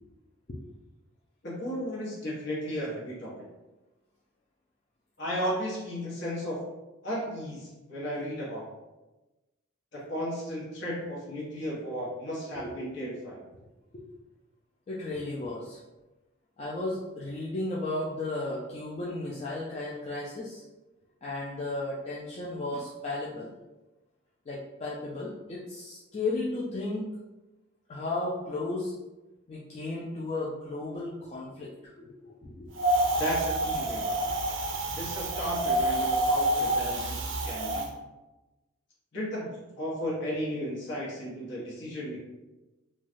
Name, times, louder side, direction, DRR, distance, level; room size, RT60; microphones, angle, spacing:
voice 1, 1.4-3.3 5.2-6.7 7.0-8.6 9.9-13.4 33.2-34.3 34.9-37.9 39.1-42.2, equal, 55° left, -5 dB, 1.0 m, -34 dB
voice 2, 14.9-15.8 16.6-20.6 21.2-23.5 24.5-27.1 27.9-28.9 29.5-32.7, left 2 dB, 30° left, -6 dB, 0.3 m, -34 dB
Wind, 32.8-37.9, right 1 dB, 60° right, 0.4 m, -28 dB
3.1 x 2.3 x 2.5 m, 1.1 s
head